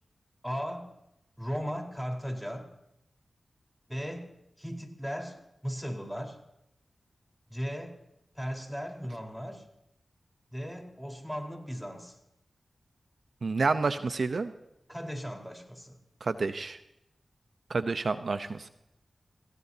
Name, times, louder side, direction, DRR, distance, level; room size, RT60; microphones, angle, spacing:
voice 1, 0.4-0.9 1.4-2.7 3.9-6.4 7.5-8.0 8.3-9.7 10.5-12.2 14.9-16.0, equal, ahead, 2 dB, 4.6 m, -37 dB
voice 2, 13.4-14.5 16.2-16.8 17.7-18.7, right 4 dB, 70° right, 10 dB, 0.9 m, -29 dB
26.5 x 17.5 x 2.9 m, 0.82 s
cardioid pair, 40°, 0 cm